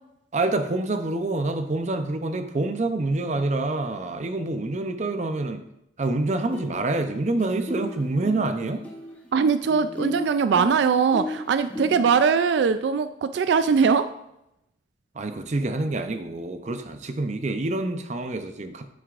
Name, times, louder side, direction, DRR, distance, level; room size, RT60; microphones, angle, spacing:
voice 1, 0.3-5.6 6.0-8.9 15.2-18.9, right 2 dB, 40° right, 8 dB, 0.6 m, -27 dB
sound 1, 6.2-6.3 6.5-7.1 7.4-12.1, left 1 dB, 10° left, 0.9 m, -34 dB
voice 2, 9.3-14.1, right 6 dB, 85° right, 11 dB, 0.3 m, -21 dB
8.7 x 7.8 x 2.5 m, 0.83 s
head